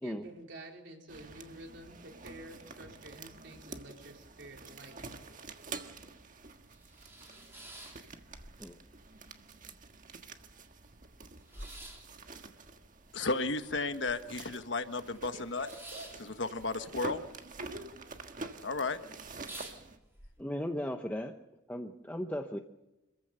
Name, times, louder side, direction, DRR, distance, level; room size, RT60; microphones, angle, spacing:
voice 1, 0.0-5.2 15.3-16.1 17.6-17.9, right 1 dB, 65° right, 1 dB, 4.2 m, -49 dB
sound 1, 1.1-20.0, right 3 dB, 45° right, 1.5 m, -48 dB
sound 2, 6.7-8.7 9.0-9.8 10.1-10.2 10.4-14.5 14.8-17.6 17.9-18.4 18.8-18.9 19.2-20.3, right 1 dB, 15° right, 3.5 m, -50 dB
voice 2, 13.1-15.7 16.4-17.3 18.6-19.0, left 3 dB, 70° left, 9 dB, 1.4 m, -33 dB
voice 3, 20.4-21.3 21.7-22.6, left 1 dB, 10° left, 4 dB, 0.9 m, -36 dB
26.0 x 15.0 x 6.8 m, 1.0 s
head